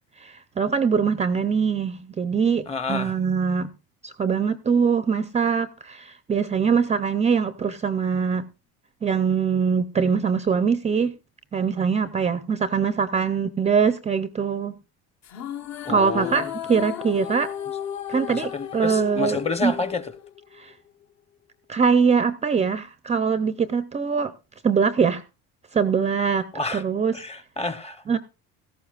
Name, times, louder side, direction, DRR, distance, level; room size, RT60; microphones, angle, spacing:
voice 1, 0.2-3.7 4.0-8.4 9.0-11.1 11.5-14.7 15.9-17.5 18.1-19.7 20.6-20.7 21.7-24.3 24.6-25.2 25.7-26.4 26.7-27.2 28.1-28.2, right 6 dB, 20° right, 0.5 m, -23 dB
voice 2, 2.7-3.1 15.8-16.5 18.3-20.1 26.5-26.8 27.1-28.0, left 4 dB, 20° left, 0.9 m, -29 dB
sound 1, 15.2-20.7, left 10 dB, 50° left, 1.2 m, -34 dB
17.5 x 14.0 x 2.4 m
cardioid pair, 150°, 35 cm